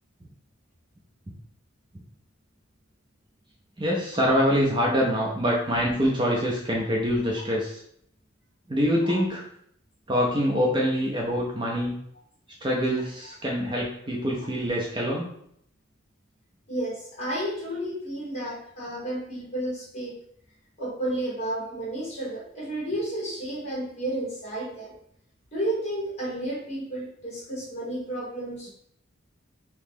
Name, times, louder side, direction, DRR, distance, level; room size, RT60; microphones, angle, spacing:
voice 1, 3.8-7.8 8.7-9.4 10.1-11.9 12.6-15.3, equal, 20° right, -3 dB, 0.5 m, -25 dB
voice 2, 16.7-20.2 20.8-24.9 25.5-28.7, right 1 dB, 30° left, -5 dB, 1.4 m, -32 dB
3.0 x 2.9 x 3.5 m, 0.68 s
head